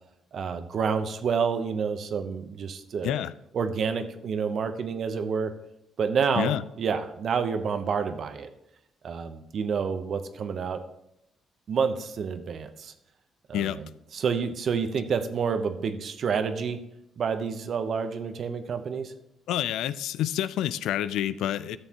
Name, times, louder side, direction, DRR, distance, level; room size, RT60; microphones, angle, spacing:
voice 1, 0.3-3.2 3.5-5.5 6.0-8.5 9.0-10.8 11.7-12.9 13.5-16.8 17.2-19.1, right 6 dB, 55° right, 9 dB, 0.8 m, -29 dB
voice 2, 19.5-21.8, left 11 dB, 85° left, 16 dB, 0.3 m, -28 dB
13.0 x 6.9 x 2.9 m, 0.81 s
cardioid pair, 90°, 0 cm